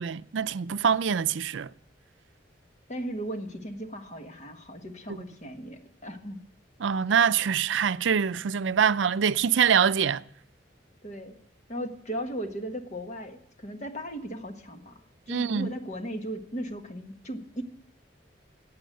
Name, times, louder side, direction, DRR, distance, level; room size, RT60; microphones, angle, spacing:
voice 1, 0.0-1.7 5.1-5.2 6.8-10.2 15.3-15.7, right 7 dB, 80° right, 0.5 m, -24 dB
voice 2, 2.9-6.4 11.0-11.3 11.7-15.0 15.3-17.6, equal, 40° left, 1.5 m, -37 dB
15.5 x 8.5 x 7.8 m
head